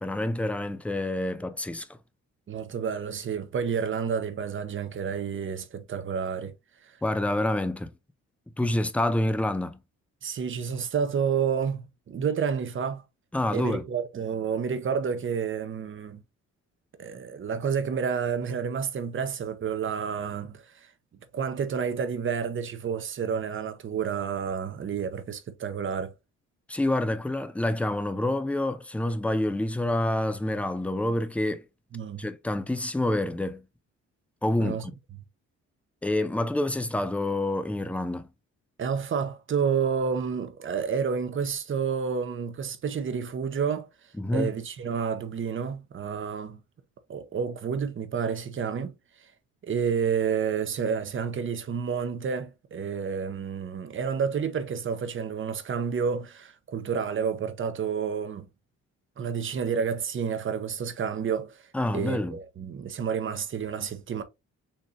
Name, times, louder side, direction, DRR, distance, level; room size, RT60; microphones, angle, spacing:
voice 1, 0.0-1.9 7.0-7.9 8.6-9.8 13.3-13.8 26.7-31.6 32.2-33.6 34.4-34.9 36.0-38.3 44.2-44.5 61.7-62.4, left 1 dB, 5° left, 0.4 m, -27 dB
voice 2, 2.5-6.5 10.2-13.0 13.5-16.2 17.0-20.6 21.3-26.1 31.9-32.3 34.6-34.8 38.8-43.9 44.3-46.6 47.1-48.9 49.6-58.5 59.2-61.6 61.9-64.2, right 6 dB, 40° right, 0.8 m, -30 dB
4.2 x 3.2 x 2.5 m
cardioid pair, 90°, 30 cm